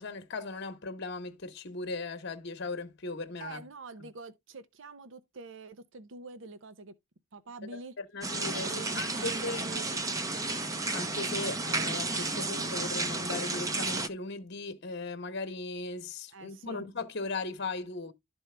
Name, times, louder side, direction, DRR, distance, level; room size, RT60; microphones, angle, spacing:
voice 1, 0.0-3.6 4.0-4.1 7.6-9.6 10.9-18.1, left 3 dB, 55° left, 1.0 m, -38 dB
voice 2, 3.4-6.9 7.3-7.9 8.6-10.0 16.3-16.9, right 3 dB, 65° right, 0.7 m, -45 dB
sound 1, 8.2-14.1, right 3 dB, 15° right, 0.6 m, -32 dB
12.0 x 4.5 x 3.3 m
head